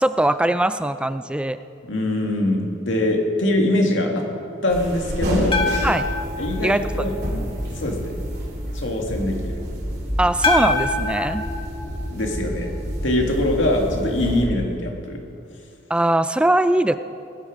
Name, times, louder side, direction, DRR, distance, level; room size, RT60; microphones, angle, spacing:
voice 1, 0.0-1.6 5.8-6.1 6.6-6.8 10.2-11.5 15.9-16.9, right 1 dB, 5° right, 12 dB, 0.3 m, -20 dB
voice 2, 1.9-4.2 4.6-5.6 6.4-7.2 7.7-8.1 8.7-9.6 12.1-12.7 13.0-15.2, left 1 dB, 90° left, 1 dB, 2.2 m, -23 dB
sound 1, 4.7-14.4, equal, 55° right, 3.9 m, -28 dB
sound 2, 5.5-7.7 10.4-12.8, left 3 dB, 30° left, 1.5 m, -26 dB
19.5 x 10.5 x 5.1 m, 2.5 s
head